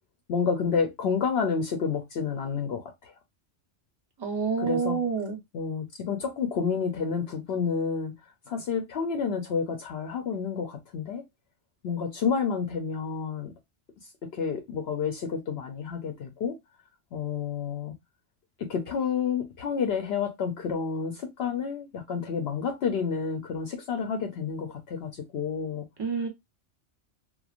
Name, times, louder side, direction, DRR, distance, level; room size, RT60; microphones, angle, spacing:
voice 1, 0.3-3.1 4.6-5.0 5.5-8.1 8.5-11.2 11.8-13.5 14.2-16.6 17.1-18.0 18.6-25.9, left 6 dB, 65° left, 0.7 m, -29 dB
voice 2, 4.2-5.4 26.0-26.3, right 5 dB, 25° right, 0.7 m, -28 dB
3.0 x 2.1 x 2.4 m
omnidirectional pair, 1.2 m